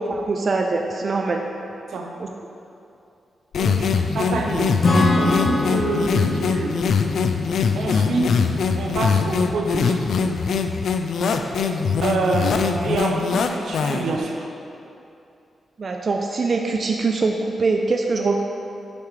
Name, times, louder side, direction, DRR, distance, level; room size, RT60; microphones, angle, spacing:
voice 1, 0.0-1.4 2.2-2.3 15.8-18.5, right 3 dB, 40° right, 2 dB, 0.3 m, -23 dB
sound 1, 3.5-14.2, left 5 dB, 70° left, 0.3 m, -22 dB
voice 2, 3.6-6.8 7.8-8.4 8.7-10.0 12.0-14.5, right 3 dB, 85° right, 1 dB, 0.7 m, -26 dB
Acoustic guitar / Strum, 4.8-8.4, left 2 dB, 45° left, 0.8 m, -24 dB
6.8 x 3.3 x 4.7 m, 2.6 s
wide cardioid pair, 145°, 0 cm